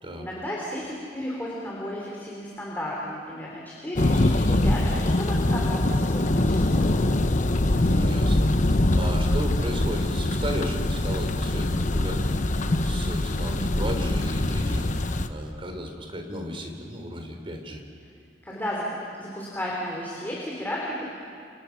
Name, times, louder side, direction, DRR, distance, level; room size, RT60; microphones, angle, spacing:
voice 1, 0.2-7.0 18.4-21.0, left 1 dB, 10° left, -4 dB, 3.9 m, -33 dB
Thunder, 4.0-15.3, left 1 dB, 45° left, 1.0 m, -23 dB
voice 2, 7.6-17.8, equal, 30° right, 3 dB, 3.7 m, -35 dB
29.5 x 27.5 x 6.0 m, 2.3 s
head